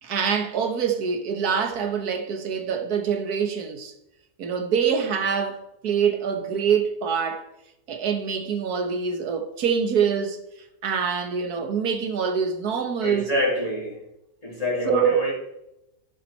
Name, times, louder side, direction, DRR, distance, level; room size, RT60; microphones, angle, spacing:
voice 1, 0.0-3.9 4.4-7.5 7.9-10.4 10.8-13.3 14.9-15.2, right 6 dB, 75° right, 1.9 m, -25 dB
voice 2, 13.0-14.0 14.4-15.3, left 1 dB, 20° left, 3.2 m, -26 dB
13.0 x 7.6 x 4.2 m
omnidirectional pair, 1.6 m